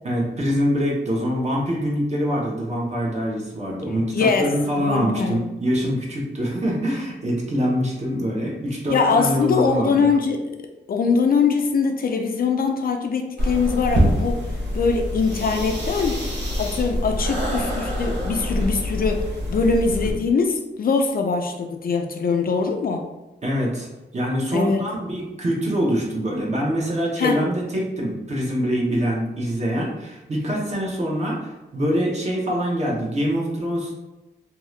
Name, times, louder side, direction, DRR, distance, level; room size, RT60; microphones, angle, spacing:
voice 1, 0.0-10.1 23.4-23.9 24.1-34.0, equal, 40° right, -3 dB, 0.9 m, -24 dB
voice 2, 4.1-4.5 4.8-5.4 8.9-10.5 10.9-14.4 14.7-16.2 16.6-23.1 24.5-24.8 27.2-27.4, left 5 dB, 55° left, 4 dB, 0.4 m, -22 dB
sound 1, 13.4-20.1, equal, 75° right, 0.9 m, -25 dB
2.7 x 2.4 x 3.1 m, 1.0 s
wide cardioid pair, 95°, 19 cm